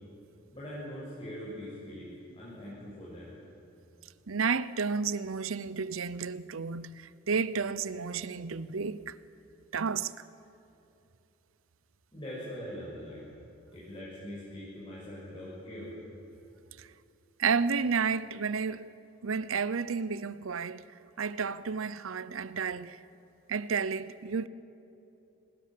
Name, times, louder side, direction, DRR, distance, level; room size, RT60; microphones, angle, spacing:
voice 1, 0.5-3.3 12.1-13.2 13.7-15.9, equal, 25° left, 6.8 m, -42 dB
voice 2, 4.3-9.1 9.7-10.1 16.8-16.9 17.4-18.9 19.2-20.8 21.2-23.0 23.5-24.5, right 5 dB, 75° right, 0.7 m, -31 dB
26.0 x 20.5 x 7.6 m
head